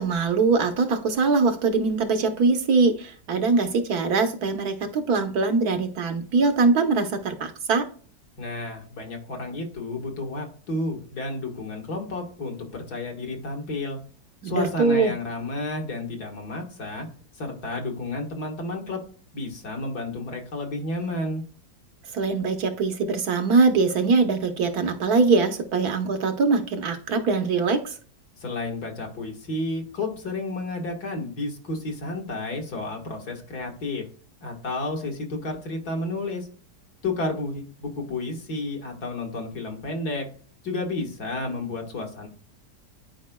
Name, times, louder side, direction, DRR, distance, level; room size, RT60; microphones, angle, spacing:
voice 1, 0.0-7.9 14.4-15.1 22.1-27.9, right 4 dB, 65° right, 7 dB, 1.4 m, -22 dB
voice 2, 8.4-14.0 14.4-17.1 17.3-19.0 19.3-21.4 28.4-34.1 34.4-36.5 37.0-40.3 40.6-42.3, left 2 dB, 65° left, 2 dB, 2.1 m, -31 dB
11.5 x 4.9 x 2.2 m, 0.42 s
omnidirectional pair, 1.8 m